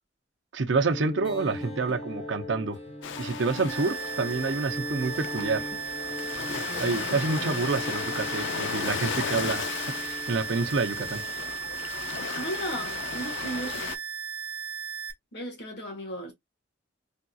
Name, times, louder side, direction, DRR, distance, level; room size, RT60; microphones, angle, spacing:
voice 1, 0.5-2.8 3.2-5.7 6.8-11.2, right 3 dB, 75° right, 0.6 m, -28 dB
sound 1, 0.9-11.5, left 1 dB, 30° left, 1.0 m, -40 dB
Ocean, 3.0-14.0, left 7 dB, 75° left, 0.4 m, -36 dB
sound 2, 3.7-15.1, right 6 dB, 10° right, 0.3 m, -36 dB
voice 2, 12.3-13.9 15.3-16.3, right 1 dB, 60° left, 1.5 m, -35 dB
3.5 x 2.7 x 2.3 m
head